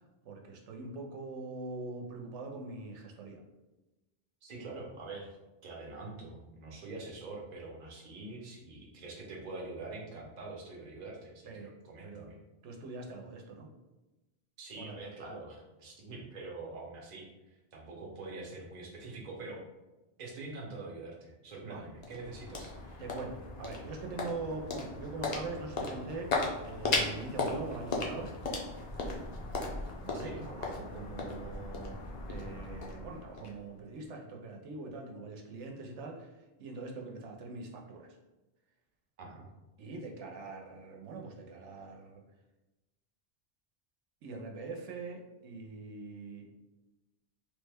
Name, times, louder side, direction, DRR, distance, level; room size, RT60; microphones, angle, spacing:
voice 1, 0.2-3.4 11.5-11.7 12.0-12.3 12.6-13.7 14.7-15.0 21.6-21.9 23.0-26.4 26.7-28.3 30.0-32.0 32.2-36.3 36.6-38.2 39.8-42.2 44.2-46.5, right 3 dB, 85° right, 1 dB, 0.9 m, -43 dB
voice 2, 4.4-5.4 5.6-12.4 14.6-19.6 20.2-23.0 30.1-30.4 39.2-39.5, right 3 dB, 45° right, -1 dB, 0.7 m, -45 dB
sound 1, 21.5-34.0, left 3 dB, 50° left, 0.5 m, -37 dB
3.2 x 2.1 x 3.3 m, 1.1 s
omnidirectional pair, 1.2 m